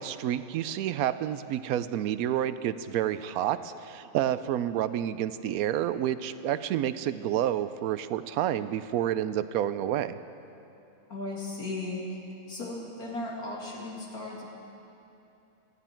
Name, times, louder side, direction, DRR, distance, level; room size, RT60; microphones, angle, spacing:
voice 1, 0.0-10.2, right 11 dB, 80° right, 13 dB, 1.0 m, -29 dB
voice 2, 11.1-12.0 12.5-14.5, left 2 dB, 85° left, -3 dB, 2.9 m, -36 dB
18.0 x 14.0 x 4.5 m, 2.9 s
omnidirectional pair, 1.5 m